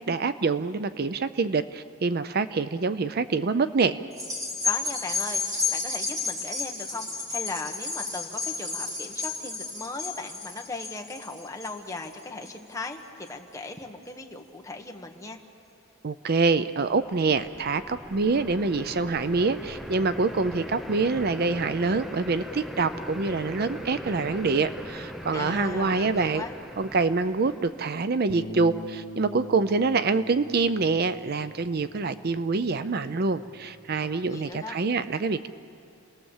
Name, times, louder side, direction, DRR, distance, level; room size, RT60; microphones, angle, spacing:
voice 1, 0.0-4.0 16.0-26.4 26.8-35.5, right 4 dB, 50° right, 12 dB, 0.5 m, -26 dB
sound 1, 4.1-12.8 13.3-13.4, left 4 dB, 15° right, 3.6 m, -32 dB
voice 2, 4.6-15.4 25.3-26.5 34.0-34.7, left 3 dB, 15° left, 3 dB, 1.4 m, -38 dB
sound 2, 16.7-28.1, equal, ahead, 0.7 m, -40 dB
Bass guitar, 28.3-34.5, left 2 dB, 30° left, 1.1 m, -44 dB
29.5 x 19.0 x 7.3 m, 2.6 s
head